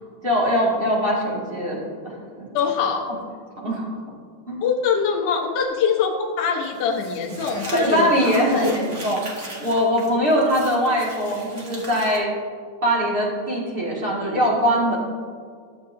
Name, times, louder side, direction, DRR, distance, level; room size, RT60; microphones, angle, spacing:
voice 1, 0.2-1.8 2.0-2.5 3.6-3.9 4.5-4.6 7.7-9.2 9.6-12.3 12.8-15.0, equal, 25° right, -6 dB, 1.4 m, -21 dB
voice 2, 2.5-3.0 4.6-8.7, left 6 dB, 65° left, -2 dB, 1.1 m, -23 dB
Crumpling crinkling, 6.6-12.2, right 1 dB, 75° right, 0.6 m, -39 dB
13.0 x 7.5 x 2.7 m, 2.1 s
omnidirectional pair, 3.6 m